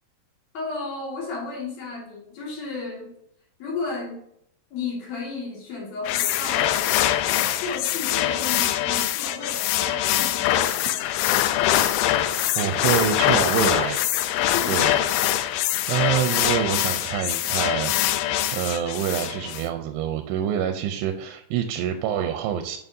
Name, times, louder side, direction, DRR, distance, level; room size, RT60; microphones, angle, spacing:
voice 1, 0.5-3.1 3.6-4.2 4.7-6.9 7.3-11.0 14.5-14.8, left 4 dB, 50° left, -3 dB, 2.9 m, -33 dB
sound 1, 6.0-19.6, left 13 dB, 90° left, 2.1 m, -23 dB
voice 2, 12.0-14.0 14.7-14.9 15.9-18.2 18.5-22.8, right 10 dB, 90° right, 7 dB, 2.7 m, -26 dB
9.3 x 5.6 x 2.7 m, 0.71 s
omnidirectional pair, 4.7 m